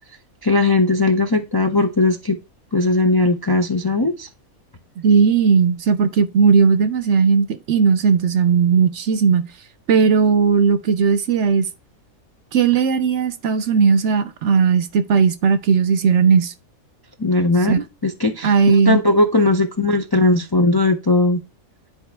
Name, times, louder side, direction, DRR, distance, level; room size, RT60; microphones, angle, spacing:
voice 1, 0.4-2.4 2.7-4.3 17.2-21.4, left 2 dB, 30° left, 0.4 m, -18 dB
voice 2, 5.0-9.5 9.9-11.7 12.5-16.5 17.7-17.8 18.4-19.0, right 6 dB, 65° right, 0.9 m, -16 dB
10.5 x 4.3 x 3.3 m
omnidirectional pair, 1.4 m